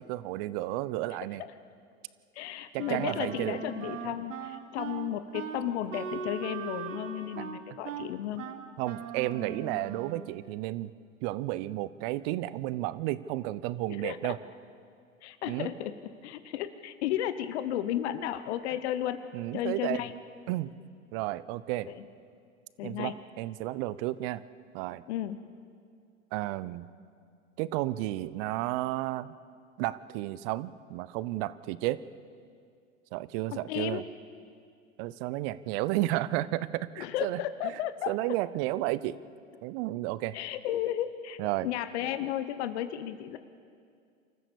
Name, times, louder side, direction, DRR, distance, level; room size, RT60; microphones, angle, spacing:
voice 1, 0.0-1.4 2.7-3.6 8.8-10.9 11.2-14.4 15.5-15.7 19.3-20.0 20.5-20.7 21.1-21.9 22.8-24.4 24.7-25.0 26.3-26.9 27.6-29.3 29.8-32.0 33.1-34.0 35.0-37.4 38.1-39.2 39.6-40.4 41.4-41.7, right 16 dB, 45° right, 17 dB, 0.8 m, -32 dB
voice 2, 2.3-8.4 13.8-14.4 15.2-19.2 19.5-20.1 21.9-22.1 22.8-23.1 25.1-25.4 33.5-34.1 37.0-38.1 40.3-43.4, left 11 dB, 55° left, 12 dB, 1.1 m, -34 dB
Wind instrument woodwind instrument, 2.8-10.3, right 7 dB, 75° right, 1.7 m, -39 dB
27.0 x 14.5 x 6.9 m, 2.3 s
hypercardioid pair, 95°, 39 cm